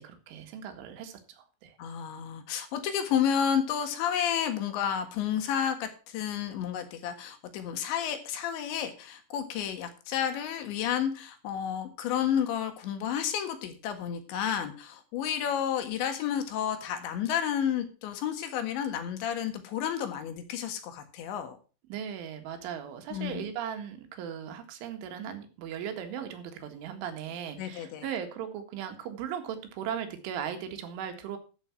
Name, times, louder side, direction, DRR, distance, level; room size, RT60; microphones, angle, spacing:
voice 1, 0.0-1.7 21.9-31.4, right 8 dB, 90° right, 6 dB, 4.2 m, -38 dB
voice 2, 1.8-21.6 23.1-23.5 27.6-28.1, left 9 dB, 75° left, 8 dB, 3.8 m, -31 dB
13.5 x 7.0 x 5.9 m, 0.35 s
omnidirectional pair, 5.4 m